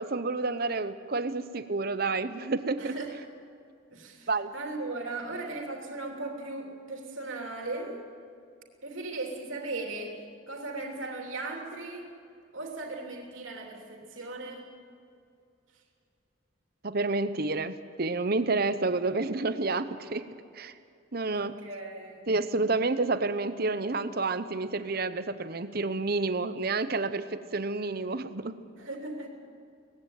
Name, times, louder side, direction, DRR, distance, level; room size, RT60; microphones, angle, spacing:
voice 1, 0.0-3.0 4.3-4.5 16.8-20.3 20.6-20.7 21.1-21.6 22.3-28.6, right 3 dB, 50° right, 12 dB, 0.9 m, -29 dB
voice 2, 2.8-3.2 3.9-8.0 8.8-10.2 10.5-12.1 12.5-14.7 21.2-22.2 28.7-29.3, right 2 dB, 80° right, 1 dB, 3.1 m, -38 dB
19.5 x 16.0 x 9.2 m, 2.5 s
head